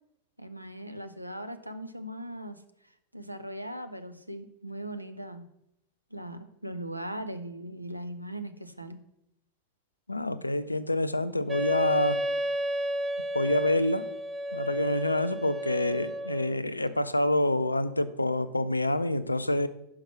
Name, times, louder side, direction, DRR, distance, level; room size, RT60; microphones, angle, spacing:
voice 1, 0.4-2.6 3.1-5.5 6.1-9.0, right 1 dB, 85° right, 9 dB, 0.5 m, -39 dB
voice 2, 10.1-12.2 13.3-14.1 14.5-19.7, left 1 dB, 85° left, 13 dB, 0.4 m, -27 dB
Wind instrument woodwind instrument, 11.5-16.5, equal, 15° right, 0.4 m, -32 dB
5.8 x 4.7 x 5.9 m, 0.80 s
figure-of-eight pair, 90°, 0 cm